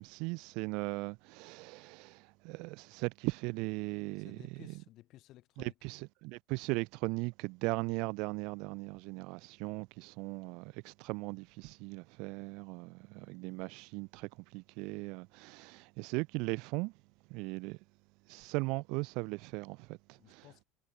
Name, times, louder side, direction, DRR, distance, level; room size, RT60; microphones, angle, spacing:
voice 1, 0.0-4.3 5.6-16.9 17.3-17.8 18.3-20.4, right 27 dB, 60° right, 0.9 m, -38 dB
voice 2, 4.1-5.8 20.2-20.6, left 16 dB, 45° left, 3.6 m, -57 dB
cardioid pair, 160°, 0 cm